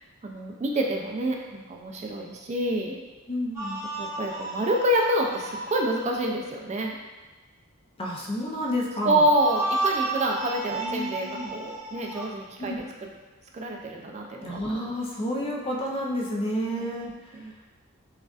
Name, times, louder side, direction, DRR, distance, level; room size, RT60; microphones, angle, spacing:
voice 1, 0.2-3.0 4.0-7.0 9.0-12.7 13.0-13.1 13.5-14.6 16.7-16.9 17.3-17.5, right 1 dB, 35° right, 0 dB, 0.4 m, -27 dB
voice 2, 3.3-3.8 8.0-9.3 10.8-11.5 12.6-12.8 14.4-17.3, equal, 25° left, -1 dB, 0.6 m, -30 dB
sound 1, 3.5-6.3 9.2-12.3, right 2 dB, 15° right, 1.2 m, -32 dB
6.2 x 2.4 x 2.4 m, 1.2 s
head